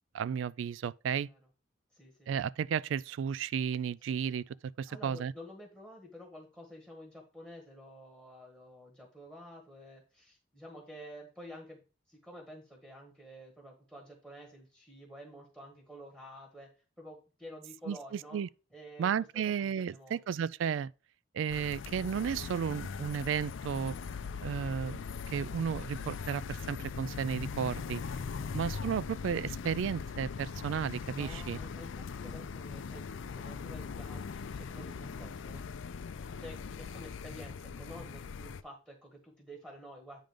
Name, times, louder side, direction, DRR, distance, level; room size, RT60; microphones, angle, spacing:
voice 1, 0.1-1.3 2.3-4.4 4.8-5.3 17.9-18.5 19.0-20.9 21.3-23.9 24.4-28.0 28.5-31.6, right 7 dB, 75° right, 0.3 m, -33 dB
voice 2, 1.9-2.3 4.9-11.8 12.1-16.7 17.0-18.4 18.7-19.1 19.3-20.2 28.4-28.5 31.1-35.6 36.4-40.2, equal, 10° right, 1.7 m, -50 dB
sound 1, 21.5-38.6, left 5 dB, 80° left, 0.4 m, -40 dB
9.0 x 3.7 x 5.0 m
head